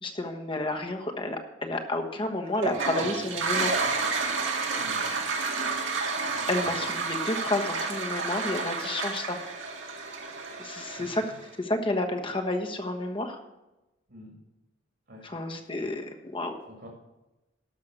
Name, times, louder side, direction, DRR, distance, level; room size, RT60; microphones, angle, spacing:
voice 1, 0.0-3.8 6.5-9.4 10.6-11.2 11.6-13.4 15.2-16.6, left 2 dB, 25° left, 4 dB, 1.2 m, -30 dB
Toilet flush, 2.5-11.4, right 4 dB, 75° right, 2.0 m, -30 dB
voice 2, 4.8-5.2 6.6-6.8 11.0-11.2 14.1-14.3 15.1-15.2 16.7-16.9, left 1 dB, 60° right, -1 dB, 2.5 m, -48 dB
12.5 x 6.3 x 6.4 m, 0.99 s
head